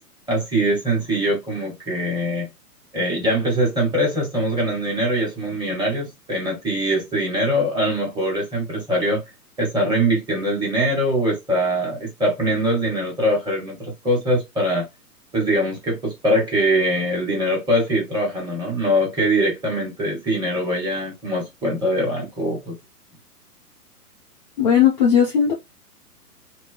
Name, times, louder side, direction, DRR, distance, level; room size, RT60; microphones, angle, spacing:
voice 1, 0.3-2.5 2.9-9.2 9.6-14.9 15.3-22.7, right 1 dB, 10° right, 1.4 m, -22 dB
voice 2, 24.6-25.5, left 8 dB, 30° left, 0.6 m, -16 dB
3.5 x 2.1 x 3.2 m
figure-of-eight pair, 120°, 48 cm